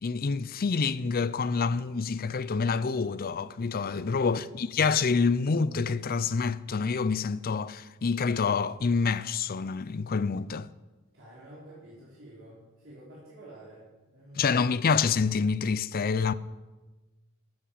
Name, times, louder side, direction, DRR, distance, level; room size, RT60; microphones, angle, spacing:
voice 1, 0.0-10.7 14.4-16.3, left 5 dB, 40° left, 0.5 m, -27 dB
voice 2, 3.9-4.5 11.1-14.6, right 1 dB, 60° right, 3.8 m, -50 dB
13.5 x 8.8 x 7.1 m
head